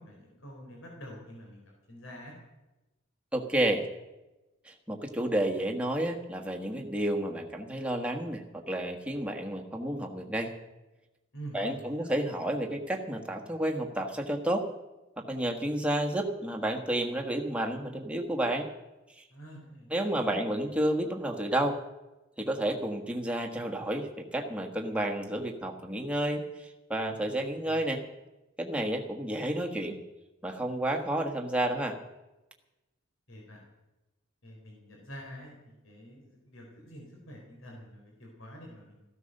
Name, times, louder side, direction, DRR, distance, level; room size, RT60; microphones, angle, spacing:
voice 1, 0.0-2.3 11.3-12.1 19.3-19.9 20.2-20.4 27.3-27.8 33.3-33.6 34.4-39.0, equal, 75° left, -1 dB, 4.1 m, -47 dB
voice 2, 3.3-3.8 4.6-10.5 11.5-14.7 15.2-18.7 19.1-19.2 19.9-21.8 22.4-28.0 28.6-30.0 30.4-32.0, right 1 dB, 5° right, 1 dB, 1.4 m, -31 dB
14.5 x 13.0 x 6.6 m, 1.0 s
head